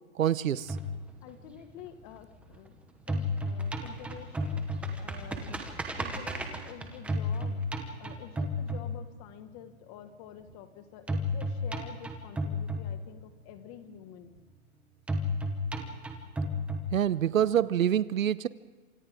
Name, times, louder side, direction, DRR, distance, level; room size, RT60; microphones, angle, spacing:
voice 1, 0.2-0.7 16.9-18.5, right 10 dB, 65° right, 16 dB, 1.1 m, -26 dB
sound 1, 0.7-2.7 3.0-9.4 11.1-13.4 15.1-17.4, left 1 dB, 5° right, 0.9 m, -33 dB
voice 2, 1.2-2.8 3.1-5.7 6.0-14.3, left 10 dB, 25° left, 8 dB, 1.8 m, -48 dB
28.0 x 27.0 x 3.8 m, 1.3 s
hypercardioid pair, 160°, 42 cm